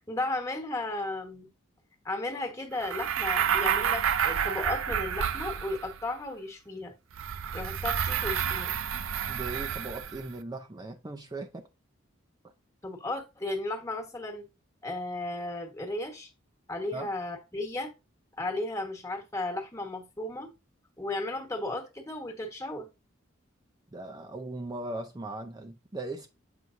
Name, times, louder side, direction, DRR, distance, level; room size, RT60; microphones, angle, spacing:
voice 1, 0.0-1.5 2.0-6.9 7.5-8.7 12.8-14.4 14.8-16.3 16.7-17.9 18.4-20.5 21.0-22.9, left 2 dB, 15° left, 1.3 m, -34 dB
sound 1, 2.8-6.1 7.1-10.3, right 8 dB, 85° right, 0.5 m, -29 dB
voice 2, 9.3-11.6 16.9-17.1 23.9-26.3, right 2 dB, 20° right, 0.5 m, -38 dB
7.8 x 5.9 x 2.6 m
head